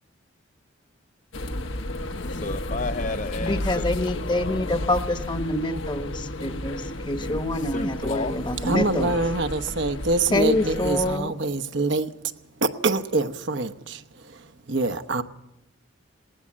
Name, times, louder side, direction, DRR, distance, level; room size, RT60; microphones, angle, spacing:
sound 1, 1.3-11.2, left 1 dB, 70° left, 1.3 m, -33 dB
voice 1, 2.3-4.1 7.7-8.4, left 3 dB, 40° left, 0.8 m, -31 dB
voice 2, 3.3-9.2 10.3-11.3, left 1 dB, 25° left, 1.2 m, -26 dB
voice 3, 8.6-12.1 12.6-15.2, right 3 dB, 60° right, 1.0 m, -25 dB
19.5 x 18.5 x 7.4 m
head